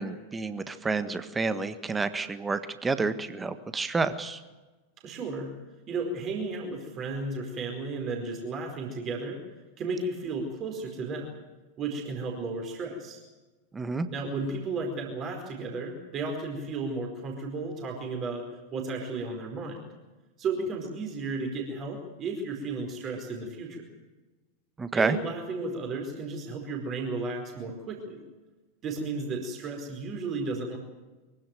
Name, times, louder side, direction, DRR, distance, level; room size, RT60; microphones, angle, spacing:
voice 1, 0.0-4.4 13.7-14.1 24.8-25.2, right 4 dB, 15° right, 11 dB, 1.5 m, -29 dB
voice 2, 5.0-5.5 5.9-9.4 9.8-11.3 11.8-13.2 14.1-19.8 20.4-23.8 24.9-28.2 28.8-30.8, right 3 dB, 30° right, 2 dB, 4.7 m, -34 dB
24.0 x 16.5 x 9.2 m, 1.2 s
figure-of-eight pair, 90°, 0 cm